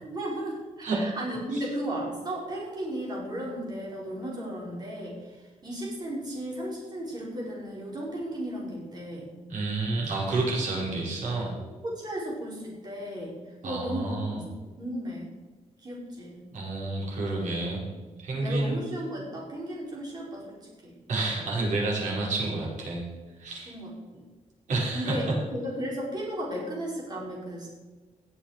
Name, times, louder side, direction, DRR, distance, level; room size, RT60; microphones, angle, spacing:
voice 1, 0.0-9.3 11.5-13.3 13.6-14.5 14.8-15.3 15.8-16.4 18.3-20.6 20.8-21.0 23.7-24.2 24.9-27.7, equal, 35° right, -3 dB, 4.9 m, -35 dB
voice 2, 9.5-11.5 13.6-14.4 16.5-17.8 18.2-18.8 21.1-23.1 23.4-23.7 24.7-25.2, right 2 dB, 75° right, -3 dB, 5.3 m, -29 dB
18.5 x 7.5 x 5.1 m, 1.3 s
wide cardioid pair, 150°, 13 cm